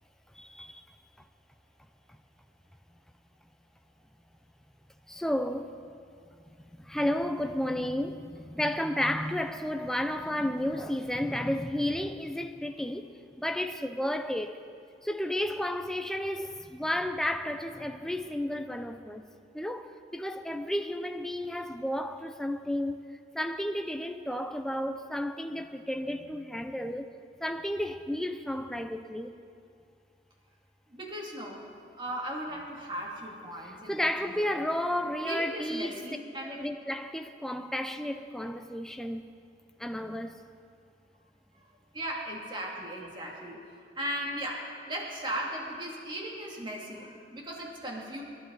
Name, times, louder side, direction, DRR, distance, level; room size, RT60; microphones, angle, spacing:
voice 1, 0.4-0.8 5.1-5.8 6.8-13.1 13.4-14.6 15.0-19.3 19.5-23.0 23.3-27.1 27.4-29.3 33.9-36.1 36.4-39.3 39.8-40.4, left 1 dB, 5° left, 0.5 m, -32 dB
voice 2, 30.9-31.6 32.0-34.6 35.2-36.6 41.5-41.7 41.9-43.6 44.0-48.2, right 1 dB, 25° right, 2.5 m, -37 dB
25.0 x 12.0 x 4.0 m
head